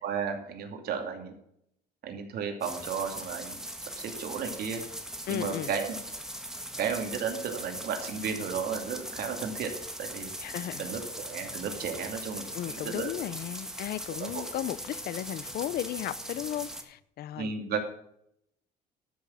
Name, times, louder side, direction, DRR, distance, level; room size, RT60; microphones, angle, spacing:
voice 1, 0.0-1.3 2.0-3.6 4.0-4.8 5.3-6.0 6.8-9.7 10.0-10.3 10.8-13.1 14.2-14.4 17.4-17.9, right 6 dB, 65° right, 2.6 m, -34 dB
sound 1, 2.6-16.8, right 1 dB, 5° right, 1.5 m, -40 dB
voice 2, 5.3-5.7 10.4-10.9 12.5-17.5, left 12 dB, 65° left, 0.7 m, -35 dB
13.0 x 6.4 x 7.2 m
cardioid pair, 110°, 17 cm